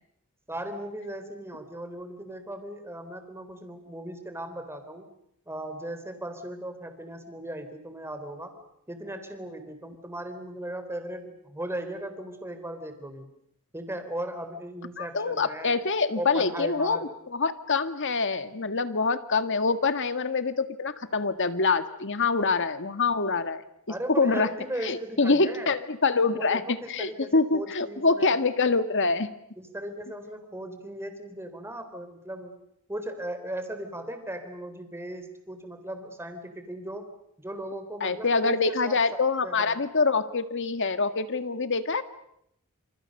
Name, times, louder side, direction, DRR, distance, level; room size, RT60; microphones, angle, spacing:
voice 1, 0.5-5.1 5.5-8.5 8.9-13.3 13.7-15.8 16.2-17.1 23.9-25.7 26.2-28.4 29.6-32.6 32.9-37.1 37.4-39.8, right 1 dB, 10° right, 8 dB, 3.8 m, -37 dB
voice 2, 15.0-23.6 24.1-24.5 24.8-26.6 26.9-29.3 38.0-42.0, left 4 dB, 55° left, 10 dB, 1.8 m, -25 dB
28.0 x 28.0 x 6.7 m, 0.76 s
head